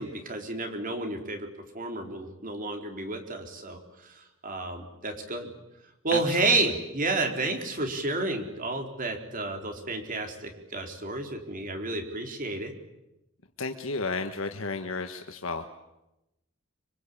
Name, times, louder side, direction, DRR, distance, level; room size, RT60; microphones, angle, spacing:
voice 1, 0.0-1.5 1.7-5.5 6.0-12.7, right 2 dB, 40° right, 5 dB, 4.0 m, -31 dB
voice 2, 6.1-6.5 13.6-15.6, left 3 dB, 70° left, 6 dB, 1.5 m, -33 dB
26.0 x 25.5 x 8.6 m, 0.92 s
head